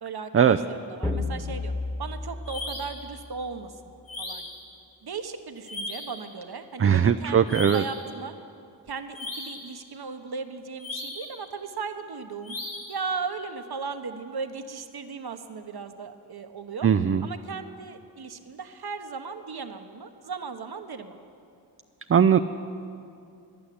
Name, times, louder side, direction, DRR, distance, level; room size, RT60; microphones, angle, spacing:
voice 1, 0.0-1.7 2.0-3.9 4.2-4.5 5.0-8.4 8.9-12.6 12.9-16.9 17.2-21.2, right 5 dB, 55° right, 8 dB, 1.1 m, -37 dB
sound 1, 1.0-3.6, left 2 dB, 5° left, 1.3 m, -33 dB
sound 2, 2.5-3.0 4.1-4.6 5.6-6.2 7.5-8.0 9.1-9.7 10.8-11.4 12.4-13.0, left 2 dB, 75° left, 3.0 m, -37 dB
voice 2, 6.8-7.8 16.8-17.2 22.1-22.4, right 8 dB, 30° right, 9 dB, 0.4 m, -19 dB
11.0 x 8.8 x 9.9 m, 2.5 s
cardioid pair, 40°, 45 cm